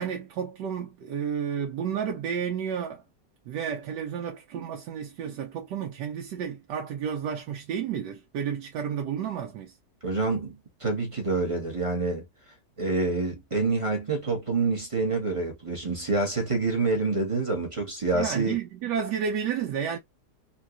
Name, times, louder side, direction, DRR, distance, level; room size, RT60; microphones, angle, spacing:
voice 1, 0.0-3.0 3.5-9.8 18.1-20.0, right 7 dB, 75° right, 1.2 m, -31 dB
voice 2, 10.0-12.2 12.8-18.5, right 3 dB, 25° right, 0.7 m, -27 dB
3.8 x 2.3 x 2.4 m
omnidirectional pair, 1.9 m